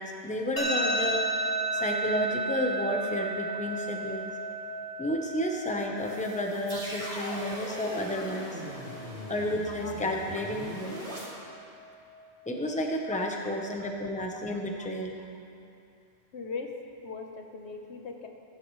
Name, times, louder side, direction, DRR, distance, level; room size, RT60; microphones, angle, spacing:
voice 1, 0.0-4.6 5.0-8.6 9.3-11.0 12.5-15.1, left 1 dB, 10° left, 1 dB, 0.8 m, -32 dB
sound 1, 0.6-13.5, right 2 dB, 40° left, 1.7 m, -35 dB
sound 2, 6.0-11.2, equal, 90° right, 2.9 m, -40 dB
voice 2, 16.3-16.7 17.0-18.3, left 4 dB, 85° left, 4 dB, 1.2 m, -40 dB
15.0 x 11.0 x 3.2 m, 2.5 s
omnidirectional pair, 1.1 m